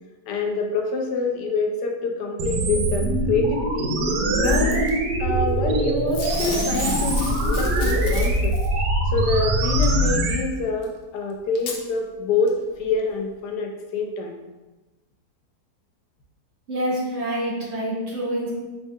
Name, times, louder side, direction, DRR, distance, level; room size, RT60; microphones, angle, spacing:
voice 1, 0.3-4.0 4.3-4.9 5.2-8.5 9.1-14.4, left 3 dB, 85° left, 2 dB, 1.2 m, -26 dB
sound 1, 2.4-10.4, right 1 dB, 80° right, 1.1 m, -22 dB
Packing tape duct tape / Tearing, 4.4-4.9 6.1-8.7 9.8-9.9 10.8-10.9 11.5-11.8 12.5-12.6, left 4 dB, 65° left, 0.8 m, -32 dB
voice 2, 16.7-18.5, equal, 60° right, -4 dB, 0.7 m, -26 dB
4.5 x 2.3 x 2.7 m, 1.2 s
omnidirectional pair, 1.8 m